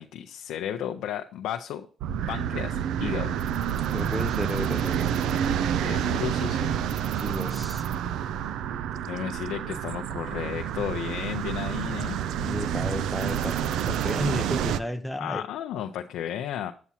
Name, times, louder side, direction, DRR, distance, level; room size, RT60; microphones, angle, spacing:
voice 1, 0.0-1.9 2.3-3.4 5.7-6.7 9.0-12.2 15.2-16.7, left 10 dB, 85° left, 0.6 m, -33 dB
sound 1, 2.0-14.8, right 9 dB, 85° right, 0.4 m, -28 dB
voice 2, 3.9-5.1 7.1-7.9 12.4-13.6 13.9-15.4, left 1 dB, 5° left, 0.6 m, -32 dB
8.4 x 7.0 x 2.8 m
cardioid pair, 90°, 0 cm